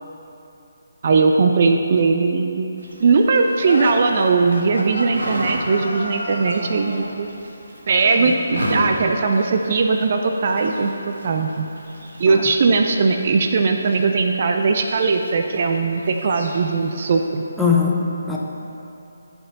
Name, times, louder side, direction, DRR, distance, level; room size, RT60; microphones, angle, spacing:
voice 1, 1.0-2.7 3.0-7.3 7.9-11.7 12.2-17.4, right 4 dB, 45° right, 4 dB, 0.5 m, -19 dB
sound 1, 2.8-17.2, right 1 dB, 60° right, 1.5 m, -34 dB
sound 2, 3.6-7.1, left 1 dB, 80° left, 1.3 m, -30 dB
voice 2, 8.0-8.3 12.3-12.5 17.6-18.4, left 5 dB, 5° left, -5 dB, 0.8 m, -21 dB
14.5 x 5.7 x 2.9 m, 2.9 s
figure-of-eight pair, 150°, 0 cm